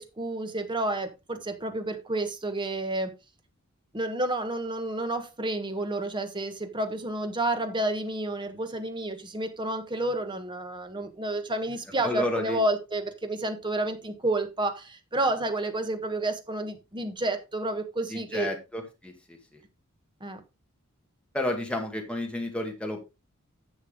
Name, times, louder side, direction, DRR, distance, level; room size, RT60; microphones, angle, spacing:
voice 1, 0.0-3.1 3.9-18.5 20.2-20.4, right 2 dB, 20° right, 1.3 m, -30 dB
voice 2, 12.0-12.6 18.1-19.1 21.3-23.0, left 1 dB, 5° left, 1.9 m, -31 dB
10.5 x 7.1 x 3.7 m
head